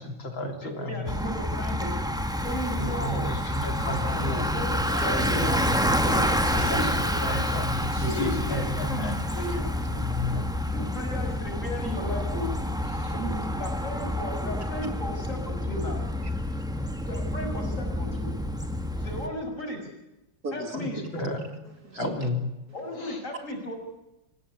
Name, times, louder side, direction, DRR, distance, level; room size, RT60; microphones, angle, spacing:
voice 1, 0.0-1.0 2.8-4.5 5.1-6.2 6.5-9.1 10.0-10.5 12.9-13.2 18.9-19.1 20.7-21.5 21.9-22.4 23.0-23.2, left 1 dB, 80° left, 4 dB, 4.0 m, -33 dB
voice 2, 0.6-1.9 2.4-3.3 3.7-4.1 4.5-5.4 6.0-7.5 8.0-10.1 10.7-12.5 13.5-16.0 17.0-18.3 19.0-19.8 20.5-21.2 22.7-23.7, left 1 dB, 40° left, 3 dB, 6.7 m, -35 dB
Bicycle, 1.1-19.3, left 1 dB, ahead, 1.6 m, -28 dB
voice 3, 2.4-2.8 3.4-3.8 4.9-5.6 6.5-6.9 7.9-8.2 9.6-9.7 10.3-10.9 13.1-13.6 16.2-17.1 20.4-20.8 21.8-22.3, right 3 dB, 50° right, 6 dB, 2.9 m, -38 dB
26.0 x 17.0 x 9.9 m, 0.96 s
omnidirectional pair, 2.1 m